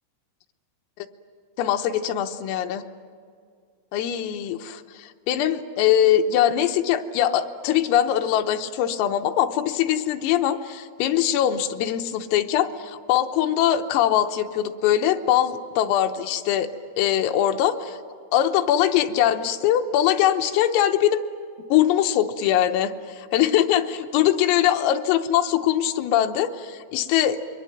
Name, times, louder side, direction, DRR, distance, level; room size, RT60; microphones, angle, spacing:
voice 1, 1.6-2.8 3.9-16.7 17.0-18.0 18.3-21.2 21.7-27.4, left 11 dB, 90° left, 6 dB, 3.6 m, -22 dB
28.0 x 22.5 x 8.9 m, 2.1 s
omnidirectional pair, 5.9 m